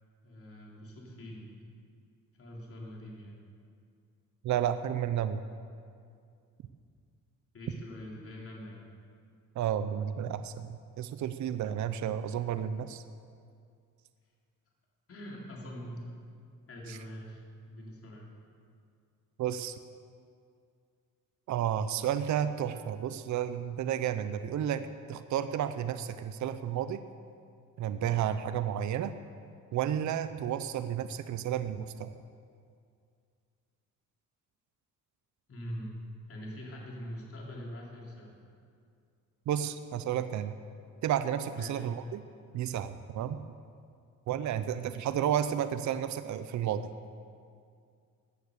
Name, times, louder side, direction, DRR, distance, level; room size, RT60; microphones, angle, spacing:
voice 1, 0.2-1.5 2.3-3.4 7.5-8.9 15.1-16.1 16.7-18.3 35.5-36.0 36.3-38.3 41.5-41.8, equal, 45° left, -2 dB, 3.6 m, -43 dB
voice 2, 4.4-5.4 9.6-13.0 16.9-17.0 19.4-19.8 21.5-27.0 27.8-29.1 29.7-32.1 39.5-40.5 41.0-42.2 42.5-43.4 44.3-46.9, right 9 dB, 60° right, 11 dB, 0.7 m, -32 dB
16.0 x 9.6 x 6.7 m, 2.3 s
cardioid pair, 105°, 33 cm